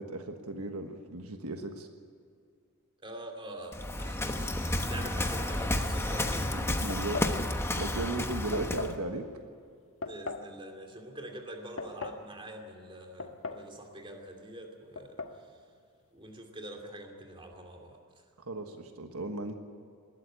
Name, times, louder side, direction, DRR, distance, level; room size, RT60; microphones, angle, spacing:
voice 1, 0.0-1.9 6.5-9.3 18.4-19.5, right 2 dB, 75° right, 6 dB, 1.4 m, -36 dB
voice 2, 3.0-6.6 10.0-15.6 16.1-18.2, right 1 dB, 25° right, 3 dB, 2.6 m, -45 dB
Waves surf, 3.7-9.0, left 1 dB, 10° left, 1.1 m, -31 dB
sound 1, 6.9-7.4 8.5-9.0 10.0-10.5 11.5-12.2 13.2-13.7 14.0-14.1 15.0-15.4, left 4 dB, 65° left, 1.4 m, -38 dB
20.0 x 13.0 x 9.9 m, 2.3 s
head